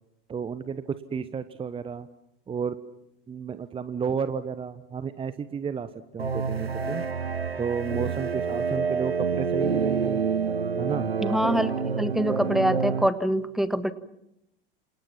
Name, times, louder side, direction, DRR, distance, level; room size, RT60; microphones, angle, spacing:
voice 1, 0.3-2.1 2.5-2.8 3.3-7.0 7.6-10.2 10.8-11.1, right 6 dB, 20° right, 13 dB, 1.1 m, -32 dB
sound 1, 6.2-13.1, right 5 dB, 85° right, 0.9 m, -27 dB
voice 2, 11.2-11.7 12.0-13.9, equal, ahead, 13 dB, 1.5 m, -24 dB
28.5 x 28.0 x 5.9 m, 0.83 s
figure-of-eight pair, 80°, 30 cm